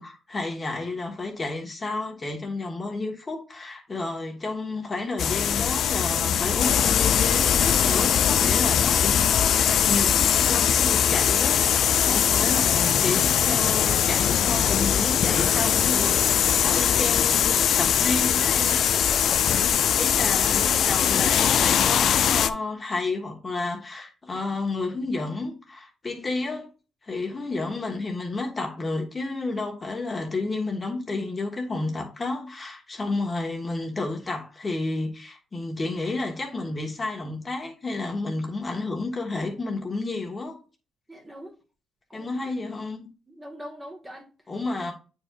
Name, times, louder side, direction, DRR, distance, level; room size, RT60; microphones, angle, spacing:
voice 1, 0.0-18.8 20.0-26.7 27.0-40.6 42.1-43.1 44.5-44.9, left 3 dB, 30° left, 1.5 m, -31 dB
sound 1, 5.2-22.5, left 9 dB, 65° left, 0.4 m, -21 dB
voice 2, 19.0-19.7 41.1-41.5 42.1-42.3 43.3-44.3, equal, 15° right, 1.7 m, -42 dB
8.4 x 4.7 x 2.5 m
cardioid pair, 90°, 0 cm